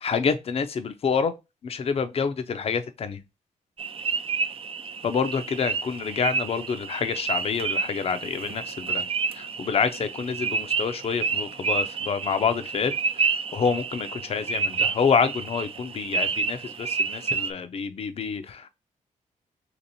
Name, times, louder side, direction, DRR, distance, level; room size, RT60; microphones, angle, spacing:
voice 1, 0.0-1.3 1.6-3.2 5.0-9.1 9.3-12.9 13.5-18.7, left 6 dB, 45° left, 0.5 m, -27 dB
sound 1, 3.8-17.5, right 5 dB, 45° right, 0.4 m, -29 dB
2.9 x 2.9 x 4.0 m
cardioid pair, 100°, 14 cm